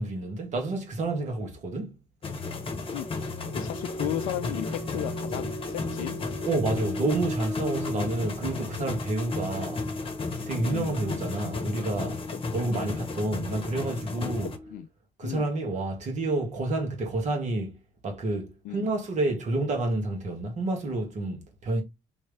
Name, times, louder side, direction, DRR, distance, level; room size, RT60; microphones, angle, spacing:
voice 1, 0.0-2.0 6.4-9.9 10.5-14.6 15.2-17.8 18.0-21.8, right 2 dB, 50° right, 1.7 m, -29 dB
sound 1, 2.2-14.6, left 3 dB, 35° left, 1.1 m, -34 dB
sound 2, 2.3-14.8, left 1 dB, 15° right, 1.2 m, -39 dB
voice 2, 2.9-6.2 7.9-8.1 10.7-11.0 12.7-12.9 14.7-14.9 15.2-15.5 18.6-18.9, left 13 dB, 60° left, 0.4 m, -35 dB
3.5 x 3.1 x 3.3 m
hypercardioid pair, 55°, 15 cm